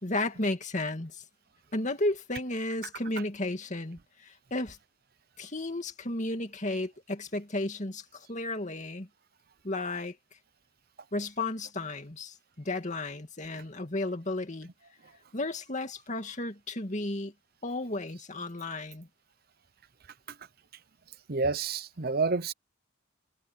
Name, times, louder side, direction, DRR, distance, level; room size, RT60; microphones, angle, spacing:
voice 1, 0.0-1.2 1.7-4.8 5.4-9.1 9.6-10.2 11.1-14.7 15.3-17.3 17.6-19.1, left 2 dB, 40° left, 2.4 m, -33 dB
voice 2, 21.3-22.5, right 4 dB, 50° right, 0.8 m, -29 dB
head